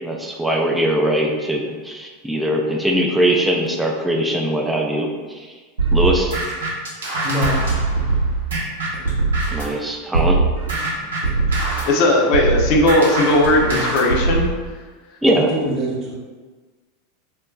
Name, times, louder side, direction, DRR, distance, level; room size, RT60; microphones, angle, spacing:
voice 1, 0.0-5.5 5.9-6.3 9.5-10.4 15.2-15.5, right 1 dB, 5° right, 0 dB, 0.4 m, -21 dB
sound 1, 5.8-9.8 10.1-14.5, right 3 dB, 75° right, 0.9 m, -21 dB
voice 2, 7.2-7.8 15.3-16.1, equal, 35° right, -4 dB, 0.9 m, -25 dB
voice 3, 11.8-14.5, left 1 dB, 55° left, -1 dB, 0.6 m, -17 dB
2.3 x 2.2 x 3.6 m, 1.4 s
hypercardioid pair, 90°, 0 cm